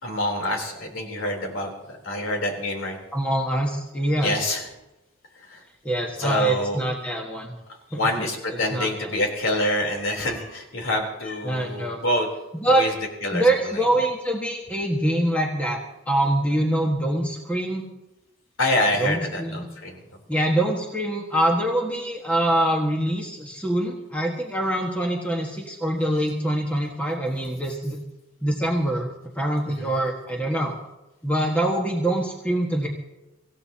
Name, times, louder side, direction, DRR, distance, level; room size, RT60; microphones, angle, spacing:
voice 1, 0.0-3.0 4.2-4.7 5.5-5.6 6.2-6.8 7.9-12.3 12.7-12.9 13.2-13.8 18.6-20.0 29.7-29.9, left 1 dB, 85° left, 1 dB, 3.6 m, -26 dB
voice 2, 3.1-4.4 5.8-7.5 7.9-8.3 8.7-9.1 11.4-12.0 12.5-12.8 13.3-17.9 19.0-19.7 20.3-28.0 28.4-29.1 29.3-30.8 31.2-32.9, right 1 dB, 5° left, -1 dB, 1.5 m, -24 dB
25.5 x 15.5 x 2.9 m, 0.98 s
head